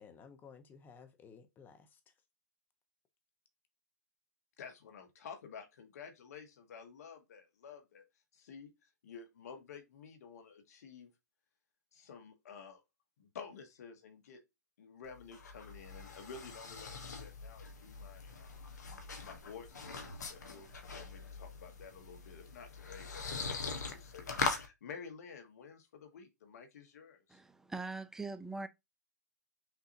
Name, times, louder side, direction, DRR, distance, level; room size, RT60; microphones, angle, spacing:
voice 1, 0.0-2.1, left 6 dB, 20° left, 1.0 m, -56 dB
voice 2, 4.6-8.0 8.3-11.1 11.9-12.8 13.2-14.4 14.8-18.6 19.2-27.4, left 6 dB, 65° left, 1.4 m, -51 dB
sound 1, 15.0-24.7, left 4 dB, 80° left, 1.1 m, -42 dB
voice 3, 27.3-28.7, right 3 dB, 5° right, 0.4 m, -42 dB
5.8 x 2.7 x 2.7 m
hypercardioid pair, 120°, 9 cm